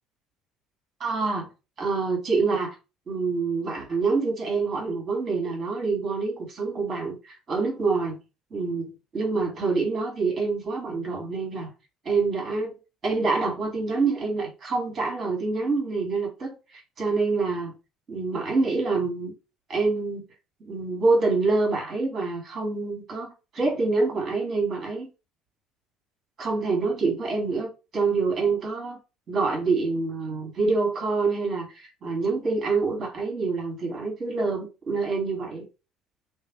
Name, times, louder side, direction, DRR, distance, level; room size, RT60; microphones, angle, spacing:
voice 1, 1.0-1.5 1.8-2.8 3.1-8.2 8.5-11.7 12.0-12.7 13.0-17.7 18.1-19.3 19.7-20.2 20.7-25.1 26.4-29.0 29.3-35.6, right 4 dB, 35° right, 1.3 m, -26 dB
2.6 x 2.4 x 2.8 m
figure-of-eight pair, 55°, 0 cm